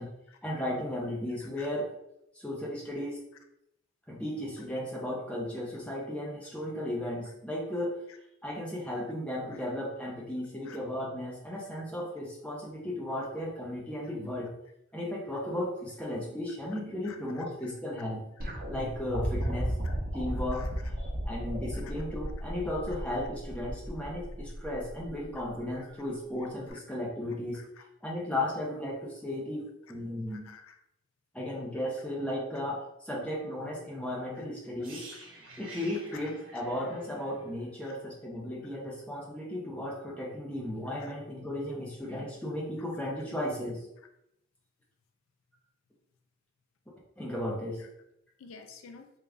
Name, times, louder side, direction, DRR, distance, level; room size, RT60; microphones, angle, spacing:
voice 1, 0.4-1.9 2.3-3.2 4.1-8.0 8.4-14.5 14.9-18.2 18.7-19.7 20.1-20.9 21.2-27.6 28.0-29.6 29.9-30.5 31.3-35.1 35.6-43.8 47.2-47.8, left 1 dB, 5° left, -4 dB, 0.6 m, -35 dB
voice 2, 1.4-1.7 7.2-7.3 8.1-8.2 9.5-9.6 10.6-10.8 14.0-14.1 16.7-17.7 18.4-18.5 19.4-19.5 19.8-20.0 20.5-20.7 21.7-21.9 22.9-23.0 25.8-25.9 26.7-26.8 27.5-27.9 30.3-30.8 34.3-34.4 35.1-35.7 36.1-36.6 37.8-38.0 40.9-41.1 47.8-47.9 48.4-49.1, left 6 dB, 80° left, 6 dB, 0.4 m, -52 dB
sound 1, 18.4-25.6 26.7-26.8, right 1 dB, 40° right, 0.8 m, -37 dB
sound 2, 34.8-38.7 38.9-39.1, right 2 dB, 75° right, 1.0 m, -50 dB
3.4 x 2.4 x 3.4 m, 0.80 s
head